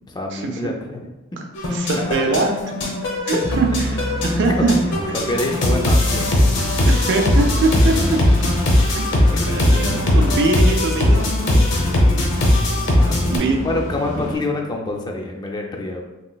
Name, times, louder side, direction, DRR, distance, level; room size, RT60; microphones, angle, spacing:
voice 1, 0.1-1.4 1.9-2.3 3.4-3.6 4.1-4.2 4.6-4.7 5.2-6.4 9.3-9.7 12.9-16.0, left 2 dB, 20° left, 1 dB, 0.3 m, -27 dB
sound 1, 1.6-13.4, left 1 dB, 60° left, 0.7 m, -19 dB
voice 2, 1.7-2.5 3.2-4.7 6.9-8.2 8.9-9.1 9.5-11.3 13.2-13.7, right 3 dB, 55° right, 3 dB, 0.4 m, -22 dB
sound 2, 3.4-14.4, equal, 85° left, 0.9 m, -34 dB
sound 3, 3.4-15.3, equal, 85° right, 0.7 m, -32 dB
3.2 x 2.9 x 2.3 m, 1.0 s
head